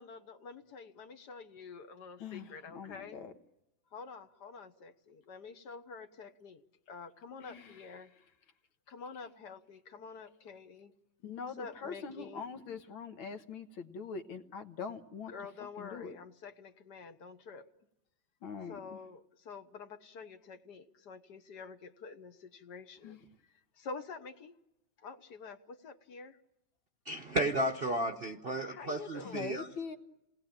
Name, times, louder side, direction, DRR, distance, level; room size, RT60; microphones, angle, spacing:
voice 1, 0.0-3.2 3.9-6.6 6.9-8.1 8.9-10.9 11.4-12.5 15.3-17.7 18.7-23.2 23.7-24.6 25.0-26.4 28.6-29.7, left 4 dB, 60° left, 9 dB, 1.6 m, -48 dB
voice 2, 2.2-3.3 7.4-7.8 11.2-15.3 15.6-16.2 18.4-19.0 23.0-23.2 29.2-30.0, left 5 dB, 80° left, 6 dB, 2.1 m, -43 dB
voice 3, 27.1-29.7, right 1 dB, 40° right, 5 dB, 0.8 m, -33 dB
28.0 x 19.0 x 8.8 m, 0.95 s
omnidirectional pair, 2.2 m